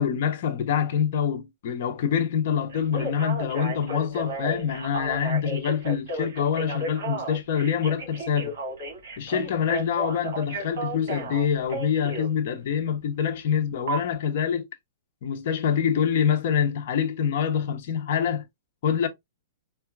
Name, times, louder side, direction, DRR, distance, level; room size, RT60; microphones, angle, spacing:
voice 1, 0.0-8.5 9.2-14.7 15.2-18.5 18.8-19.1, left 8 dB, 50° left, 0.6 m, -25 dB
Telephone, 2.7-12.3 13.9-14.0, right 2 dB, 55° right, 1.5 m, -33 dB
3.8 x 2.3 x 2.2 m
hypercardioid pair, 165°, 0 cm